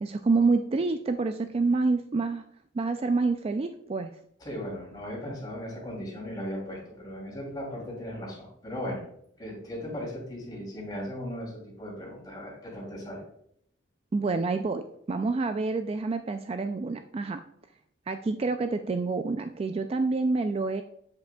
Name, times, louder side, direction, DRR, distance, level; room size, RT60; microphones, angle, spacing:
voice 1, 0.0-2.4 2.7-4.2 14.1-17.4 18.1-20.8, right 3 dB, 30° right, 8 dB, 0.3 m, -27 dB
voice 2, 4.4-9.0 9.4-11.5 11.8-13.2, equal, 20° left, -3 dB, 2.8 m, -37 dB
7.5 x 7.3 x 2.3 m, 0.69 s
head